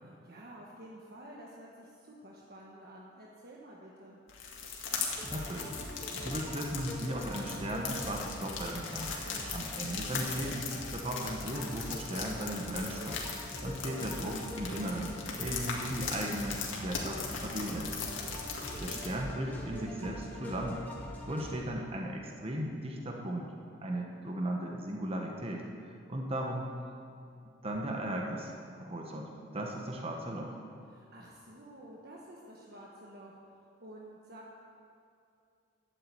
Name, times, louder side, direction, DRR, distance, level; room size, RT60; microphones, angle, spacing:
voice 1, 0.0-4.2 9.3-9.6 17.9-18.5 29.5-29.7 30.9-34.5, right 1 dB, 50° right, -3 dB, 1.3 m, -51 dB
sound 1, 4.3-19.1, left 5 dB, 75° left, 2.0 m, -39 dB
sound 2, 5.2-21.5, equal, 10° left, 1.9 m, -44 dB
voice 2, 5.3-5.8 6.2-9.1 9.5-13.2 13.6-17.9 18.8-20.8 21.3-23.5 23.8-26.7 27.6-30.6, right 1 dB, 30° right, 0 dB, 1.1 m, -37 dB
12.0 x 7.7 x 8.4 m, 2.4 s
head